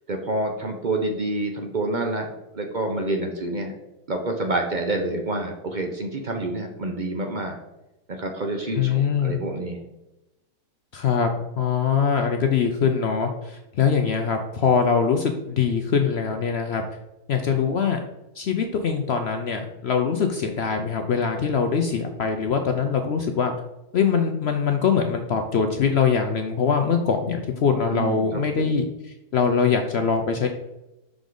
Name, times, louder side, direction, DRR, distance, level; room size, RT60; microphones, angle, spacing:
voice 1, 0.1-2.3 2.5-3.7 4.1-7.6 8.1-9.8 27.9-28.8, right 2 dB, 45° right, 3 dB, 0.6 m, -28 dB
voice 2, 8.8-9.4 10.9-16.8 17.3-18.0 18.4-23.5 23.9-28.8 29.3-30.5, left 6 dB, 70° left, 5 dB, 0.6 m, -23 dB
6.1 x 5.2 x 3.8 m, 0.93 s
omnidirectional pair, 1.7 m